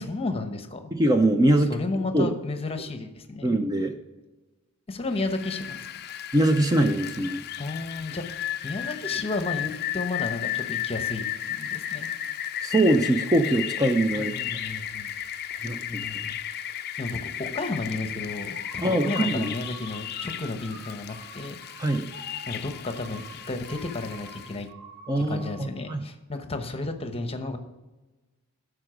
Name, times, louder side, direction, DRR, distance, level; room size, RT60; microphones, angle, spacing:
voice 1, 0.0-0.9 1.7-3.6 4.9-5.9 7.6-12.1 14.1-15.1 15.6-16.4 17.0-21.6 22.5-24.7 25.2-27.6, left 2 dB, 25° left, 7 dB, 0.9 m, -33 dB
voice 2, 0.9-1.7 2.1-2.3 3.4-3.9 6.3-7.4 12.6-14.3 15.6-16.2 18.8-19.5 21.8-22.1 25.1-26.0, right 1 dB, 15° right, 6 dB, 0.5 m, -23 dB
Rain, 5.1-24.6, left 11 dB, 45° left, 0.4 m, -34 dB
sound 1, 18.5-25.7, right 3 dB, 45° right, 2.1 m, -47 dB
12.5 x 5.0 x 5.0 m, 1.1 s
head